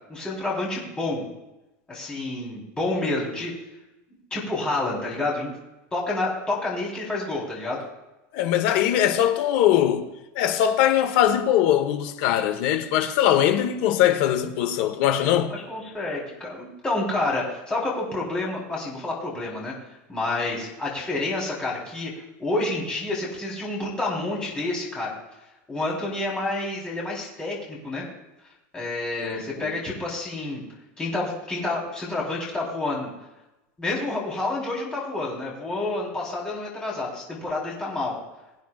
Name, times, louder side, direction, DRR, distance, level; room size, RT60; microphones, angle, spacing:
voice 1, 0.1-1.2 1.9-3.5 4.3-5.5 5.9-7.8 15.5-19.7 20.1-22.1 22.4-25.1 25.7-28.0 28.7-30.6 31.0-33.1 33.8-38.1, left 2 dB, 10° left, 3.9 m, -29 dB
voice 2, 8.3-10.1 10.3-15.5 29.2-29.7, left 11 dB, 55° left, 1.2 m, -21 dB
23.0 x 9.2 x 2.5 m
supercardioid pair, 165°, 7 cm